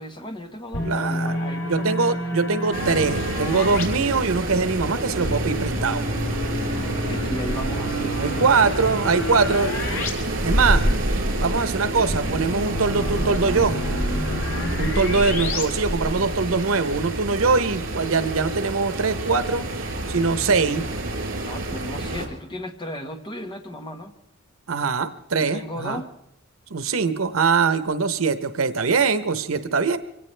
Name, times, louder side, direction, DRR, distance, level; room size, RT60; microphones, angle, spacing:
voice 1, 0.0-2.2 7.1-8.8 21.4-24.1 25.4-26.1, equal, 25° left, 5 dB, 1.5 m, -35 dB
sound 1, 0.7-3.8 5.2-10.1 10.4-10.5 12.1-15.6, left 1 dB, 90° left, 3.9 m, -29 dB
voice 2, 0.8-1.4 1.7-6.0 8.2-9.7 10.4-11.0 11.4-13.8 14.8-19.6 20.1-20.8 24.7-26.0 26.7-30.0, right 4 dB, 90° right, 12 dB, 0.9 m, -22 dB
sound 2, 2.7-22.3, right 1 dB, 70° right, 4.0 m, -28 dB
24.5 x 17.5 x 3.3 m, 0.83 s
head